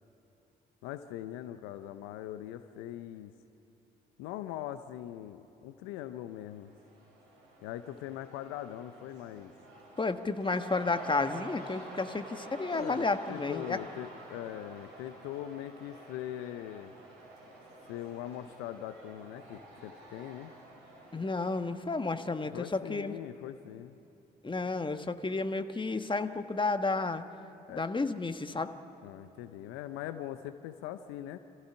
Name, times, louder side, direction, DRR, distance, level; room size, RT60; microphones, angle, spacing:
voice 1, 0.8-3.3 4.2-6.7 7.6-9.5 12.7-16.9 17.9-20.5 22.5-24.0 27.7-27.8 29.0-31.4, left 12 dB, 75° left, 11 dB, 0.7 m, -41 dB
Cheering / Crowd, 6.1-23.0, right 2 dB, 75° right, 5.0 m, -50 dB
voice 2, 10.0-13.8 21.1-23.1 24.4-27.2 27.7-28.7, left 3 dB, 25° left, 8 dB, 1.4 m, -32 dB
27.0 x 15.5 x 9.9 m, 3.0 s
hypercardioid pair, 45°, 21 cm